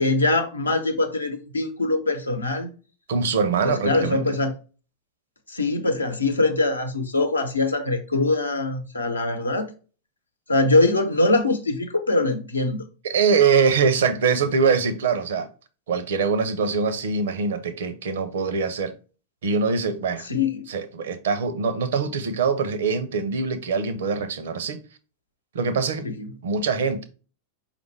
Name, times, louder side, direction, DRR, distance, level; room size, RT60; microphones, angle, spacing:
voice 1, 0.0-2.7 3.6-4.5 5.5-9.7 10.5-12.8 20.2-20.7 26.0-26.3, left 2 dB, 80° left, 0.8 m, -23 dB
voice 2, 3.1-4.4 13.0-15.5 15.9-18.9 19.4-20.3 20.7-24.8 25.5-26.1 26.4-27.0, right 5 dB, 60° right, 0.6 m, -23 dB
5.0 x 2.5 x 3.3 m
figure-of-eight pair, 90°, 0 cm